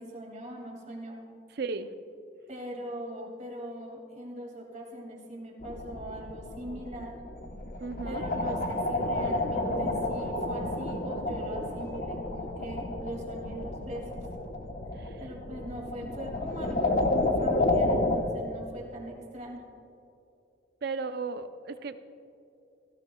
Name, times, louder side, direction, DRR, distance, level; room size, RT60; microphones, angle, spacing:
voice 1, 0.0-1.3 2.5-7.2 8.0-14.1 15.2-19.6, equal, 40° right, 0 dB, 2.2 m, -41 dB
voice 2, 1.5-1.9 7.8-8.3 14.9-15.2 20.8-22.0, right 4 dB, 60° right, 11 dB, 0.5 m, -35 dB
sound 1, 5.6-18.2, left 2 dB, 50° left, 1.0 m, -31 dB
16.5 x 15.5 x 2.3 m, 2.7 s
head